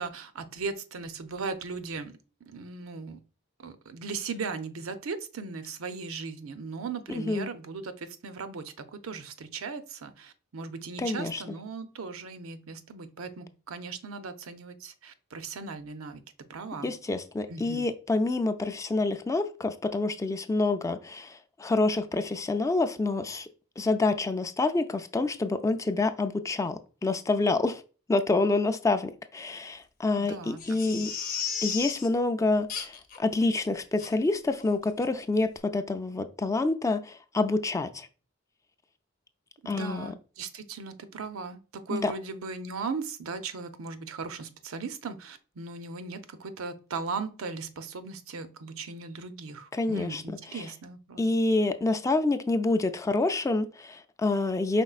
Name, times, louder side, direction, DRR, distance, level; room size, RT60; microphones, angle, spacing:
voice 1, 0.0-2.1 2.5-3.2 3.6-16.2 16.5-16.9 17.5-17.9 30.2-31.1 39.6-51.2, right 4 dB, 85° right, 0.5 m, -38 dB
voice 2, 7.1-7.5 11.0-11.6 16.8-23.5 23.8-27.8 28.1-31.1 31.6-38.1 39.7-40.1 41.9-42.1 49.7-50.2 50.5-50.7 51.2-54.8, left 2 dB, 15° left, 0.3 m, -27 dB
Crying sobbing, 30.6-32.1 32.7-33.2 33.5-33.6 34.0-34.1 34.6-34.7 35.0-35.1, left 7 dB, 45° left, 0.8 m, -34 dB
5.2 x 3.9 x 2.4 m
head